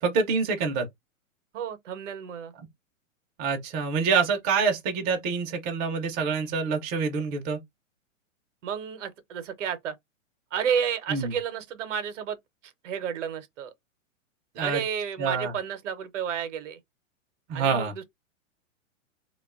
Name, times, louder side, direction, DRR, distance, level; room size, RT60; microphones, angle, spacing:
voice 1, 0.0-0.9 3.4-7.6 11.1-11.3 14.6-14.8 15.2-15.5 17.5-17.9, right 5 dB, 25° right, 0.5 m, -26 dB
voice 2, 1.5-2.5 8.6-10.0 10.5-12.4 12.6-13.7 14.6-16.8 17.5-18.0, right 8 dB, 65° right, 0.8 m, -31 dB
2.5 x 2.3 x 2.3 m
hypercardioid pair, 130°, 40 cm